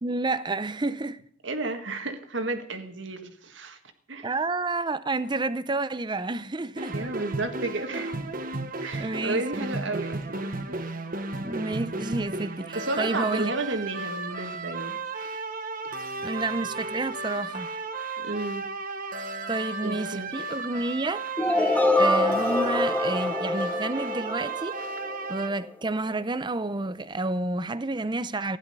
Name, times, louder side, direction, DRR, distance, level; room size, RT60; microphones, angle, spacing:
voice 1, 0.0-1.2 4.2-7.0 9.0-9.7 11.4-13.5 16.2-17.7 19.5-21.2 22.0-24.8 25.3-28.6, right 2 dB, 25° right, 0.6 m, -30 dB
voice 2, 1.4-3.8 4.1-4.3 6.9-8.1 8.8-10.8 12.7-15.0 18.2-18.7 19.8-20.3, right 2 dB, 70° right, 1.7 m, -32 dB
Space journey, 6.8-25.5, right 3 dB, 45° right, 1.3 m, -34 dB
sound 1, 21.4-25.3, left 1 dB, 10° left, 1.1 m, -25 dB
15.5 x 11.0 x 5.4 m
head